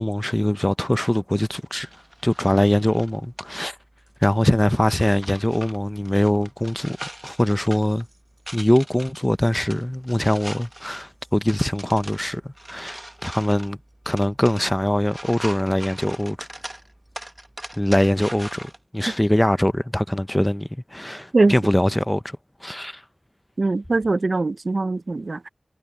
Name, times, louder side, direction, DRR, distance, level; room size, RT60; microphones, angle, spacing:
voice 1, 0.0-1.9 2.2-3.8 4.2-8.1 8.5-13.8 14.1-16.5 17.8-23.0, left 1 dB, 10° left, 0.6 m, -22 dB
sound 1, 1.8-18.8, right 1 dB, 15° right, 1.0 m, -41 dB
voice 2, 23.6-25.5, right 3 dB, 45° right, 0.5 m, -21 dB
wide cardioid pair, 95°, 0 cm